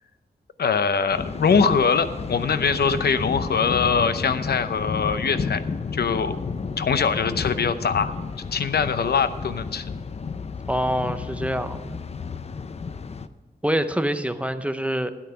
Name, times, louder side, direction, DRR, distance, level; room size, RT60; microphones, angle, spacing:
voice 1, 0.6-5.6 5.9-6.4 6.8-8.1 8.5-9.8, left 5 dB, 70° left, 11 dB, 0.7 m, -22 dB
Thunder, 1.1-13.3, left 5 dB, 40° left, 0.5 m, -32 dB
voice 2, 10.7-12.0 13.6-15.1, equal, 5° right, 9 dB, 0.6 m, -25 dB
13.0 x 10.0 x 5.6 m, 1.3 s
wide cardioid pair, 155°, 17 cm